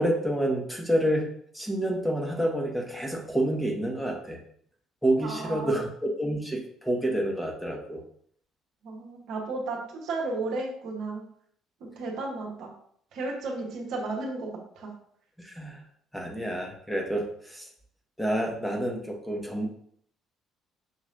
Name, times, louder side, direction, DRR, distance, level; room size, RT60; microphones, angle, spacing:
voice 1, 0.0-4.4 5.0-8.0 15.4-15.8 16.1-17.7 18.2-19.7, right 1 dB, 5° left, 0 dB, 1.1 m, -28 dB
voice 2, 5.2-5.8 8.8-11.2 11.8-12.7 13.1-14.5 14.8-14.9, right 3 dB, 60° right, -1 dB, 1.0 m, -33 dB
5.8 x 3.1 x 2.5 m, 0.63 s
figure-of-eight pair, 50°, 0 cm